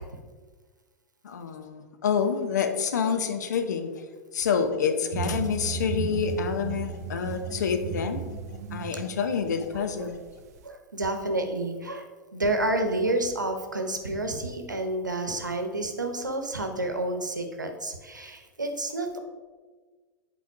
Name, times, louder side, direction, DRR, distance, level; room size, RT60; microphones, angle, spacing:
voice 1, 1.2-4.0 4.3-8.3 8.7-10.2, left 6 dB, 70° left, 7 dB, 0.8 m, -27 dB
sound 1, 5.1-10.6, right 7 dB, 60° right, 0.5 m, -35 dB
voice 2, 9.7-10.1 10.6-12.0 12.3-19.2, right 2 dB, 85° right, 5 dB, 0.9 m, -29 dB
8.1 x 4.5 x 4.7 m, 1.4 s
figure-of-eight pair, 90°, 10 cm